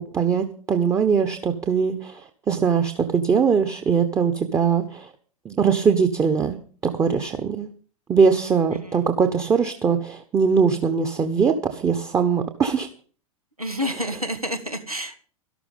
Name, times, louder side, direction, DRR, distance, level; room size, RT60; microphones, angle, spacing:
voice 1, 0.0-2.2 2.5-5.1 5.4-6.6 6.8-7.7 8.1-12.9, right 6 dB, 15° right, 7 dB, 1.3 m, -21 dB
voice 2, 8.4-9.1 13.6-15.2, equal, 90° right, 7 dB, 2.2 m, -30 dB
13.0 x 12.5 x 5.4 m, 0.42 s
figure-of-eight pair, 100°, 18 cm